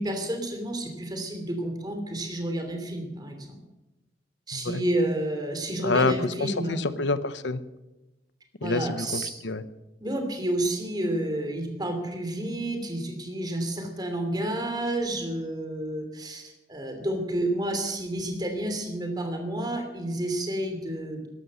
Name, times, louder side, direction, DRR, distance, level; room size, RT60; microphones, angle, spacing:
voice 1, 0.0-3.6 4.5-6.8 8.6-9.3 10.0-21.3, right 1 dB, 20° right, 5 dB, 2.8 m, -30 dB
voice 2, 4.5-4.8 5.8-6.1 6.4-7.6 8.6-9.6, left 3 dB, 75° left, 14 dB, 0.9 m, -27 dB
13.5 x 11.5 x 7.7 m, 1.0 s
head